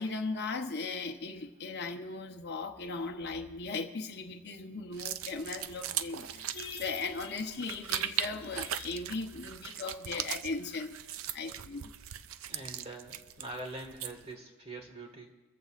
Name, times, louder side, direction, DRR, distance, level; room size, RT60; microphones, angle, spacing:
voice 1, 0.0-11.0 11.3-11.9, left 3 dB, 50° left, 3 dB, 0.9 m, -37 dB
sound 1, 4.9-14.3, right 10 dB, 70° right, 0.5 m, -39 dB
voice 2, 12.5-15.3, right 2 dB, 30° right, 3 dB, 1.8 m, -44 dB
26.0 x 14.5 x 2.5 m, 1.1 s
head